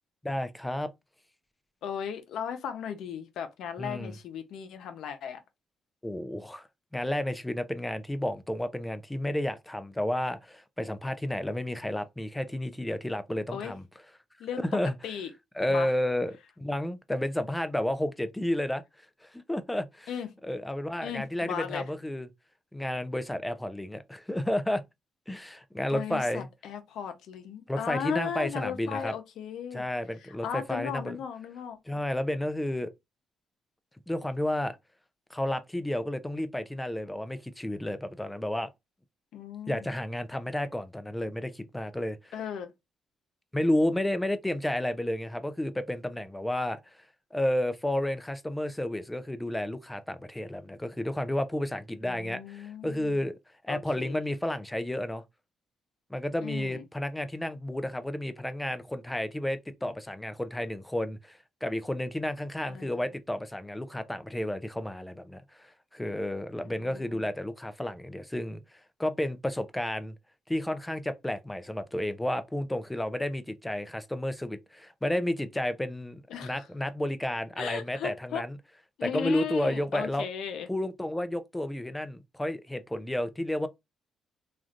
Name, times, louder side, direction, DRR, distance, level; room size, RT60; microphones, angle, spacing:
voice 1, 0.2-0.9 3.8-4.1 6.0-6.7 6.9-13.8 14.6-14.9 15.6-18.8 19.2-20.1 20.4-22.3 22.7-24.8 25.3-26.5 27.7-29.1 29.7-31.2 31.9-32.9 34.1-34.8 35.3-38.7 39.7-42.3 43.5-47.0 47.3-53.3 53.6-55.2 56.1-68.6 69.0-70.1 70.5-78.6 79.0-80.3 80.7-83.7, left 1 dB, 10° left, 0.5 m, -31 dB
voice 2, 1.8-5.4 13.5-13.7 14.4-14.6 15.0-15.3 15.7-15.9 20.1-20.3 21.0-21.9 25.9-29.9 30.2-31.8 39.3-39.9 42.3-42.7 52.0-53.2 53.7-54.2 56.4-56.8 62.7-63.0 66.6-67.2 76.3-76.7 77.6-78.4 79.0-80.7, left 8 dB, 75° left, 0.7 m, -36 dB
3.1 x 2.5 x 2.5 m
cardioid pair, 90°, 0 cm